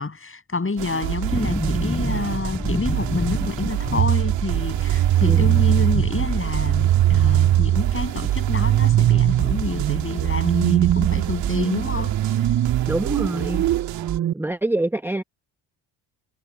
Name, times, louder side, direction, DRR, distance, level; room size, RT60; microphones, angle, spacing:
voice 1, 0.0-12.4, left 3 dB, 30° left, 7.6 m, -28 dB
sound 1, 0.8-14.2, right 15 dB, 80° right, 1.9 m, -29 dB
sound 2, 1.3-10.1 10.4-10.5 10.8-11.8 12.1-12.2, left 1 dB, 10° left, 7.2 m, -31 dB
sound 3, 4.0-14.3, right 12 dB, 40° right, 0.6 m, -21 dB
voice 2, 5.2-5.6 12.9-13.6 14.3-15.2, right 1 dB, 5° right, 0.9 m, -25 dB
supercardioid pair, 60°, 43 cm